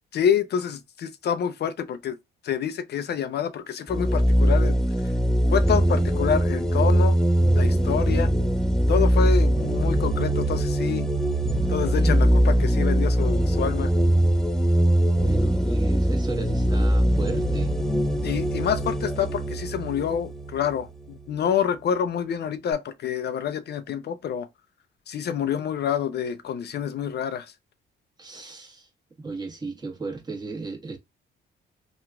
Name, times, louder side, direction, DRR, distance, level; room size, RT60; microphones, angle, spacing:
voice 1, 0.1-2.2 2.4-4.8 5.0-5.1 5.5-7.2 7.6-8.3 8.9-11.1 11.7-13.9 18.2-24.5 25.1-27.5, left 8 dB, 55° left, 0.5 m, -27 dB
sound 1, 3.9-21.3, right 1 dB, 5° left, 0.5 m, -22 dB
voice 2, 11.8-12.8 15.2-17.7 28.2-28.9 29.2-31.0, right 3 dB, 20° right, 1.3 m, -35 dB
2.9 x 2.4 x 3.4 m
cardioid pair, 90°, 20 cm